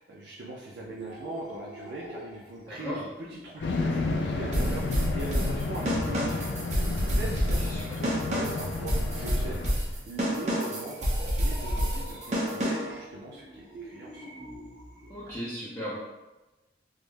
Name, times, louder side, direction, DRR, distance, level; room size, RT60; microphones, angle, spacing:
voice 1, 0.0-6.5 7.0-14.3, right 2 dB, 85° right, -5 dB, 0.5 m, -40 dB
sound 1, 0.8-15.4, right 1 dB, 60° right, 1.1 m, -47 dB
sound 2, 3.6-9.7, left 3 dB, 85° left, 0.4 m, -32 dB
sound 3, 4.5-13.0, equal, 40° right, 0.7 m, -29 dB
voice 2, 7.6-8.0 15.1-16.0, equal, 20° left, -10 dB, 0.6 m, -36 dB
3.6 x 2.0 x 3.2 m, 1.1 s
head